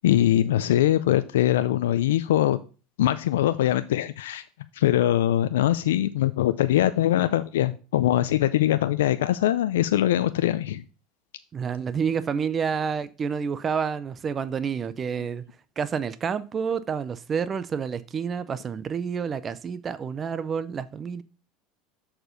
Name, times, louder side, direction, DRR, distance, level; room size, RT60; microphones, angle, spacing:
voice 1, 0.0-2.6 3.0-4.4 4.7-10.8, left 13 dB, 90° left, 0.4 m, -22 dB
voice 2, 11.5-15.4 15.8-21.2, right 6 dB, 30° right, 0.5 m, -29 dB
6.7 x 4.4 x 5.2 m
supercardioid pair, 100°, 0 cm